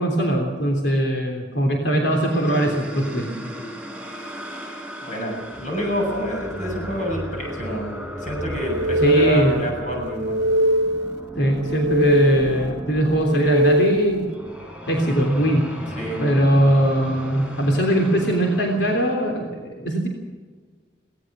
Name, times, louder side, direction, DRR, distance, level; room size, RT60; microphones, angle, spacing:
voice 1, 0.0-3.3 9.0-9.6 11.4-14.3 14.9-15.7 16.2-20.1, right 1 dB, 75° left, 1 dB, 3.4 m, -21 dB
sound 1, 2.2-19.1, equal, 5° right, 5.6 m, -35 dB
voice 2, 5.1-10.4 15.9-16.2, equal, 45° left, 0 dB, 7.0 m, -28 dB
sound 2, 8.6-9.7 10.1-11.2 11.6-12.7 13.1-14.3, equal, 65° right, 0.7 m, -21 dB
23.5 x 18.5 x 6.2 m, 1.5 s
head